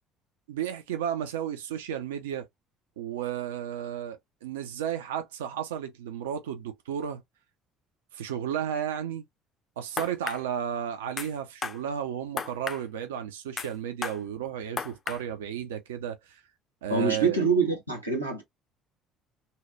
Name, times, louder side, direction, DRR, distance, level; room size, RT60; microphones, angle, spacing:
voice 1, 0.5-2.5 3.0-7.2 8.1-9.2 9.8-16.4 16.8-17.4, right 9 dB, 70° right, 0.4 m, -33 dB
sound 1, 10.0-10.4 11.2-11.3 11.6-11.8 12.4-12.8 13.6-13.7 14.0-14.2 14.8-15.2, left 5 dB, 35° left, 0.4 m, -33 dB
voice 2, 16.9-18.4, right 4 dB, 90° right, 0.8 m, -25 dB
2.7 x 2.1 x 2.4 m
figure-of-eight pair, 55°, 0 cm